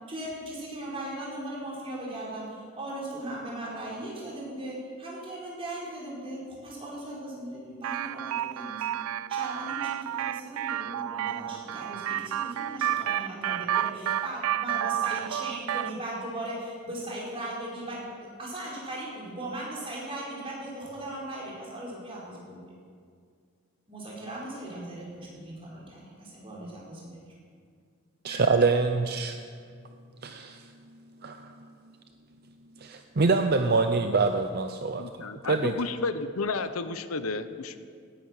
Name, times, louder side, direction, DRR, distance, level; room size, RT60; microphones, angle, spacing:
voice 1, 0.1-8.9 9.3-22.6 23.9-27.2 28.3-28.6, right 1 dB, 25° right, -5 dB, 4.8 m, -38 dB
sound 1, 7.8-16.0, right 11 dB, 85° right, 0.3 m, -31 dB
voice 2, 28.2-29.4 30.2-30.6 31.2-31.5 32.8-35.0 35.5-35.7, right 4 dB, 45° right, 7 dB, 0.6 m, -25 dB
voice 3, 34.9-37.8, left 4 dB, 90° left, 11 dB, 0.8 m, -32 dB
18.0 x 10.0 x 6.5 m, 2.1 s
head